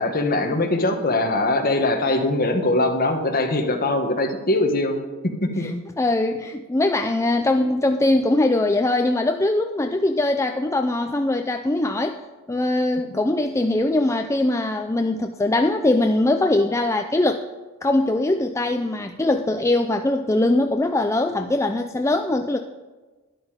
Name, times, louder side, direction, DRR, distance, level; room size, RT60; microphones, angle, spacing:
voice 1, 0.0-5.7, left 2 dB, 45° left, 3 dB, 1.7 m, -22 dB
voice 2, 6.0-12.2 12.5-17.4 17.8-22.6, left 2 dB, 15° left, 5 dB, 0.4 m, -21 dB
12.5 x 11.0 x 5.2 m, 1.3 s
head